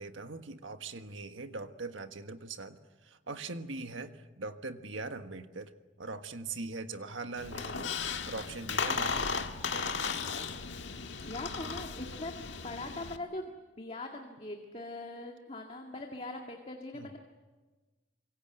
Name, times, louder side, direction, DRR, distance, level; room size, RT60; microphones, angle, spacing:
voice 1, 0.0-5.7 6.0-7.9 8.3-10.2 16.9-17.1, right 3 dB, 85° right, 8 dB, 1.5 m, -41 dB
Squeak, 7.4-13.2, left 5 dB, 70° left, 1.6 m, -35 dB
voice 2, 11.2-12.3 12.6-17.2, left 2 dB, 30° left, 2 dB, 1.9 m, -41 dB
26.0 x 23.0 x 8.0 m, 1.3 s
head